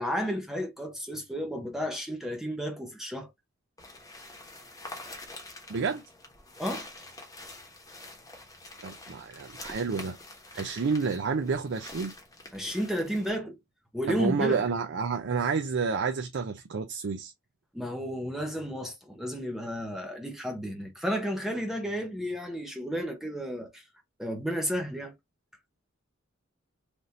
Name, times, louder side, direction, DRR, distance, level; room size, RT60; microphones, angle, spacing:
voice 1, 0.0-3.3 6.6-6.9 12.5-13.6 13.9-14.6 17.7-23.8 24.2-25.1, equal, ahead, 0.6 m, -32 dB
sound 1, 3.8-13.3, left 2 dB, 15° left, 1.0 m, -46 dB
voice 2, 5.7-6.0 8.8-10.2 10.5-12.1 14.1-17.3, right 5 dB, 60° right, 0.5 m, -29 dB
3.4 x 2.5 x 2.8 m
head